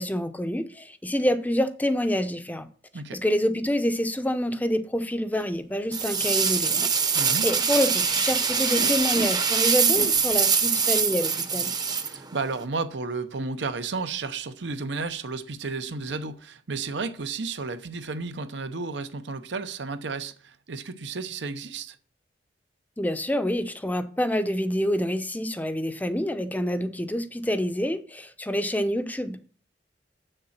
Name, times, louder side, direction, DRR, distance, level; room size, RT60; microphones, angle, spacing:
voice 1, 0.0-2.7 3.1-11.7 23.0-29.5, equal, 10° left, 0.6 m, -27 dB
Animal, 5.4-5.5 6.2-6.8 7.6-9.3 9.9-11.2, right 3 dB, 50° right, 1.2 m, -40 dB
sound 1, 5.9-12.6, right 6 dB, 20° right, 0.8 m, -24 dB
voice 2, 7.1-7.5 12.0-22.0, right 4 dB, 70° right, 0.8 m, -32 dB
7.6 x 6.7 x 5.8 m
head